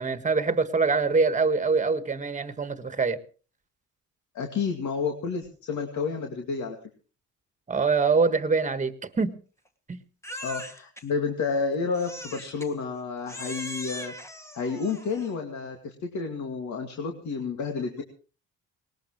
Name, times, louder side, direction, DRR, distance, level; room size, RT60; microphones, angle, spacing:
voice 1, 0.0-3.2 7.7-9.4 9.9-10.0, right 4 dB, 25° right, 1.6 m, -24 dB
voice 2, 4.3-6.8 10.4-14.1 14.5-18.0, left 5 dB, 70° left, 2.3 m, -30 dB
Crying sobbing, 10.2-11.0 11.9-12.7 13.3-15.4, left 1 dB, 10° left, 1.7 m, -40 dB
19.0 x 19.0 x 3.2 m
cardioid pair, 90°, 30 cm